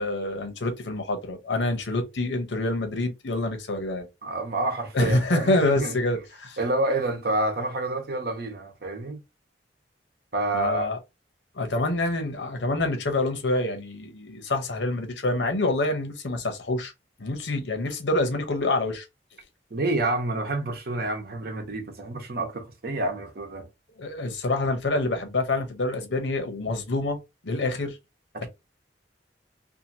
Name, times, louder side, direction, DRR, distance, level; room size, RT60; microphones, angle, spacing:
voice 1, 0.0-4.1 4.9-6.6 10.5-11.0 11.5-16.9 17.2-19.1 23.9-27.2 27.4-28.0, left 2 dB, 80° left, 0.8 m, -26 dB
voice 2, 4.2-6.0 6.6-9.2 10.3-10.9 19.7-23.7 28.3-28.5, right 2 dB, 60° right, 0.9 m, -28 dB
2.7 x 2.5 x 2.7 m
head